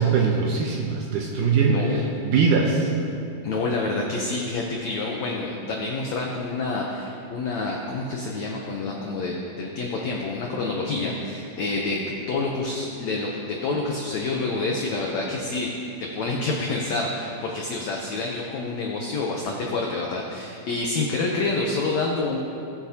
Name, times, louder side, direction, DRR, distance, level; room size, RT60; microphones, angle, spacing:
voice 1, 0.0-2.9, right 5 dB, 75° right, 0 dB, 2.0 m, -22 dB
voice 2, 1.6-2.0 3.4-15.7 16.0-22.4, left 3 dB, 85° left, -1 dB, 1.5 m, -28 dB
20.0 x 7.1 x 2.9 m, 2.6 s
omnidirectional pair, 4.4 m